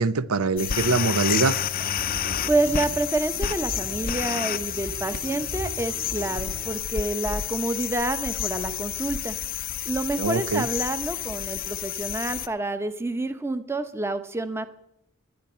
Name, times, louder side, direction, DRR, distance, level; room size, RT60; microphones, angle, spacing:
voice 1, 0.0-1.6 10.2-10.7, right 4 dB, 85° right, 0.7 m, -23 dB
sound 1, 0.6-12.5, left 9 dB, 45° left, 0.5 m, -30 dB
sound 2, 1.8-6.8, equal, 45° right, 1.7 m, -39 dB
voice 2, 2.5-9.4 9.9-14.7, right 2 dB, 10° right, 0.8 m, -28 dB
19.0 x 11.5 x 4.4 m
head